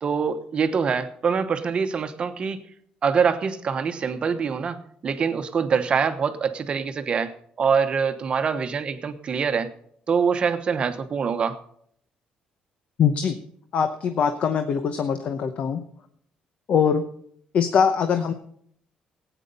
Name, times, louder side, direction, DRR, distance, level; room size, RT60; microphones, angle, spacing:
voice 1, 0.0-2.6 3.0-7.3 7.6-9.7 10.1-11.6, right 6 dB, 40° right, 8 dB, 1.0 m, -24 dB
voice 2, 13.0-13.4 13.7-15.8 16.7-17.0 17.5-18.3, left 7 dB, 50° left, 9 dB, 0.8 m, -22 dB
15.5 x 9.1 x 5.4 m, 0.66 s
cardioid pair, 130°, 3 cm